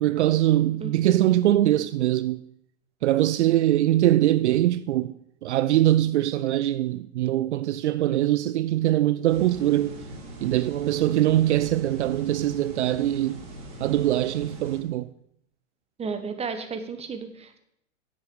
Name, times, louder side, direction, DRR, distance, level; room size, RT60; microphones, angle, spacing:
voice 1, 0.0-2.4 3.0-5.1 5.4-10.0 10.4-13.4 13.8-15.1, right 14 dB, 65° right, 0.6 m, -22 dB
sound 1, 9.3-14.8, right 1 dB, 40° right, 5.0 m, -41 dB
voice 2, 16.0-17.6, right 5 dB, 15° right, 1.4 m, -33 dB
9.5 x 8.2 x 7.0 m
hypercardioid pair, 100°, 38 cm